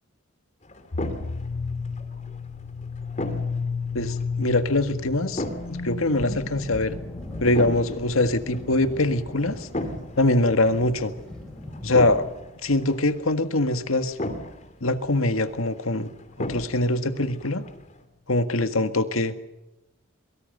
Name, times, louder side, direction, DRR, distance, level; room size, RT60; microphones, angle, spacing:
sound 1, 0.6-18.0, left 1 dB, 35° left, 2.7 m, -38 dB
sound 2, 0.9-12.2, left 4 dB, 55° left, 0.9 m, -33 dB
voice 1, 4.0-5.4 5.8-7.0 7.4-9.7 10.2-11.1 11.8-12.3 12.6-14.2 14.8-16.1 16.4-17.6 18.3-19.4, left 2 dB, 85° left, 9 dB, 1.8 m, -23 dB
Thunder, 6.0-12.4, left 1 dB, ahead, 6.4 m, -41 dB
23.5 x 23.0 x 6.7 m, 0.96 s
head